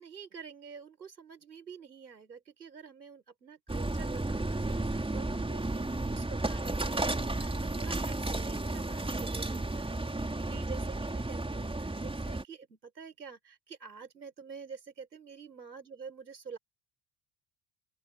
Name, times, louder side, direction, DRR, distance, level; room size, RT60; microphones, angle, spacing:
voice 1, 0.0-16.6, right 6 dB, 85° right, 6.0 m, -48 dB
sound 1, 3.7-12.4, right 2 dB, 10° right, 4.3 m, -33 dB
open air
figure-of-eight pair, 55°, 50 cm